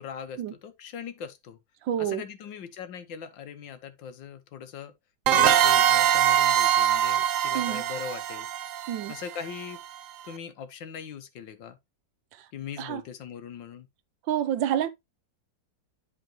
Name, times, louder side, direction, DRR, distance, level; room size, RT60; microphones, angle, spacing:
voice 1, 0.0-1.6 2.0-4.9 5.3-8.5 9.1-9.8 10.2-11.8 12.5-13.9, left 7 dB, 85° left, 1.8 m, -40 dB
voice 2, 1.8-2.2 7.5-7.8 8.9-9.1 12.8-13.0 14.3-14.9, right 10 dB, 85° right, 1.5 m, -28 dB
sound 1, 5.3-9.8, right 10 dB, 70° right, 0.7 m, -23 dB
10.5 x 4.4 x 3.0 m
omnidirectional pair, 2.0 m